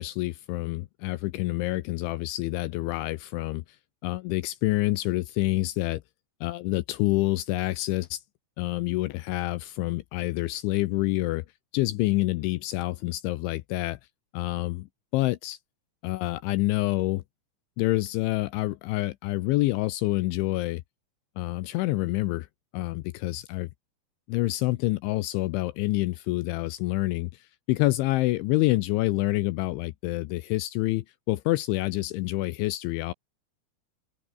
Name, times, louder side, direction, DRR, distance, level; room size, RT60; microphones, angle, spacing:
voice 1, 0.0-3.6 4.0-6.0 6.4-8.2 8.6-11.5 11.7-14.0 14.3-15.6 16.0-17.2 17.8-20.8 21.4-22.5 22.7-23.7 24.3-33.1, left 19 dB, 80° left, 2.9 m, -27 dB
open air
omnidirectional pair, 5.9 m